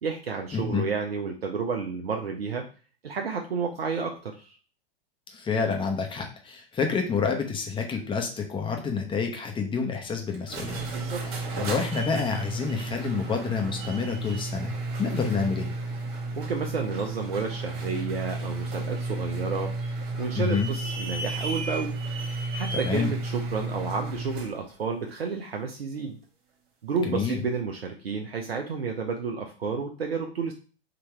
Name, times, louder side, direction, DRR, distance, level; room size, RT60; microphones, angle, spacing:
voice 1, 0.0-2.6 3.0-4.6 10.9-11.2 16.4-21.9 22.5-26.2 26.8-30.5, right 5 dB, 85° right, 3 dB, 0.7 m, -31 dB
voice 2, 0.5-0.9 5.3-10.8 11.2-14.7 15.0-15.7 20.4-20.7 22.8-23.1 27.0-27.4, left 5 dB, 15° left, 3 dB, 1.0 m, -28 dB
sound 1, 10.3-24.6, right 2 dB, 45° right, 1.5 m, -33 dB
3.8 x 2.9 x 4.5 m, 0.37 s
hypercardioid pair, 100°, 29 cm